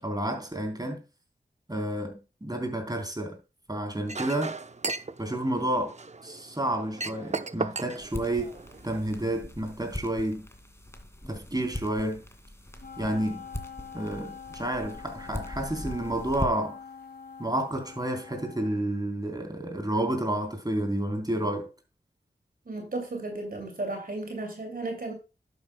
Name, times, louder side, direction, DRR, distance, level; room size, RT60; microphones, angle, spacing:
voice 1, 0.0-1.0 1.7-3.4 3.7-4.6 5.2-5.9 6.2-8.6 8.8-10.5 11.3-12.2 13.0-13.4 13.9-16.8 17.4-21.7, right 1 dB, 20° right, 3.6 m, -30 dB
Chink clink, 4.1-9.0, right 3 dB, 40° right, 0.7 m, -36 dB
sound 1, 8.0-16.8, left 1 dB, 15° left, 2.3 m, -40 dB
Wind instrument woodwind instrument, 12.8-18.9, left 7 dB, 60° left, 2.1 m, -45 dB
voice 2, 22.7-25.1, right 2 dB, 60° right, 2.6 m, -34 dB
11.0 x 9.2 x 2.2 m
cardioid pair, 40°, 18 cm